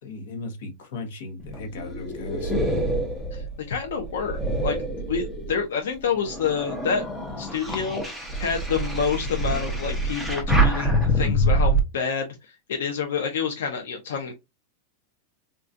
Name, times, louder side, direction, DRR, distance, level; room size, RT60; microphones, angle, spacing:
voice 1, 0.0-2.5, left 3 dB, 65° left, 1.0 m, -36 dB
sound 1, 1.4-5.6 6.2-11.8, right 1 dB, 5° left, 0.6 m, -25 dB
voice 2, 3.3-4.8 5.1-7.0 7.4-14.3, left 6 dB, 90° left, 0.6 m, -28 dB
3.8 x 2.3 x 2.5 m
supercardioid pair, 175°, 0 cm